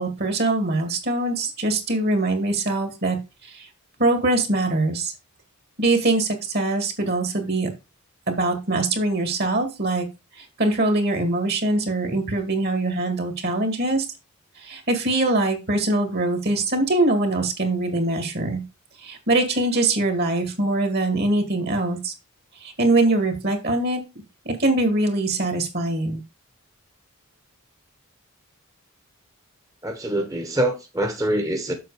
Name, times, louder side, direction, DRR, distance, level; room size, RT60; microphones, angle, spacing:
voice 1, 0.0-3.2 3.4-3.7 4.0-5.1 5.8-7.7 8.3-10.1 10.4-14.1 14.6-18.6 19.0-22.1 22.6-24.0 24.4-26.2, right 2 dB, 45° right, 2.1 m, -23 dB
voice 2, 29.8-31.7, right 1 dB, 15° right, 1.2 m, -24 dB
7.7 x 6.3 x 4.9 m
head